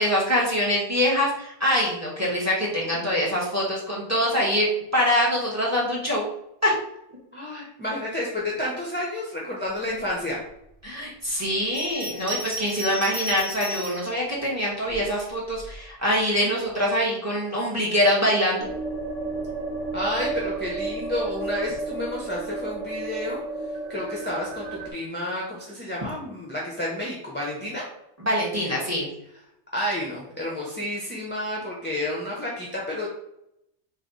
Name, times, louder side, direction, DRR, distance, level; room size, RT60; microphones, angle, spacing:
voice 1, 0.0-6.2 6.6-6.7 10.8-18.7 28.2-29.1, equal, 15° right, -4 dB, 1.5 m, -24 dB
voice 2, 7.3-10.4 19.9-23.4 23.9-27.8 29.7-33.1, left 1 dB, 10° left, -4 dB, 0.8 m, -30 dB
Bell, 11.6-14.1 14.8-15.7, equal, 65° right, 1.6 m, -35 dB
sound 1, 18.6-24.9, right 3 dB, 35° right, 0.9 m, -32 dB
4.0 x 3.3 x 4.0 m, 0.79 s
omnidirectional pair, 1.2 m